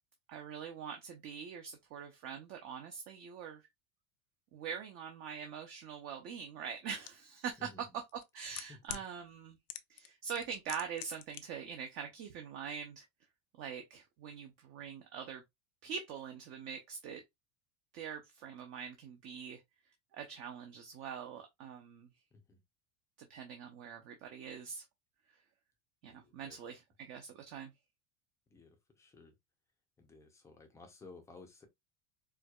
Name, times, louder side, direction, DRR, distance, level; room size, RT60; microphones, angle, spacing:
voice 1, 0.3-3.7 4.5-7.7 8.1-9.6 9.9-13.0 13.6-15.4 15.8-17.2 17.9-19.6 20.1-22.1 23.2-24.8 25.3-25.4 26.0-27.7, right 7 dB, 40° right, 0.6 m, -44 dB
sound 1, 7.1-7.2 8.1-9.1 9.7-10.1 10.3-11.4 11.7-11.8, left 12 dB, 75° left, 0.6 m, -43 dB
voice 2, 8.7-9.0 22.3-22.6 26.0-26.6 28.5-29.3 30.0-31.7, left 3 dB, 10° left, 0.5 m, -56 dB
4.5 x 2.3 x 2.2 m
cardioid pair, 170°, 34 cm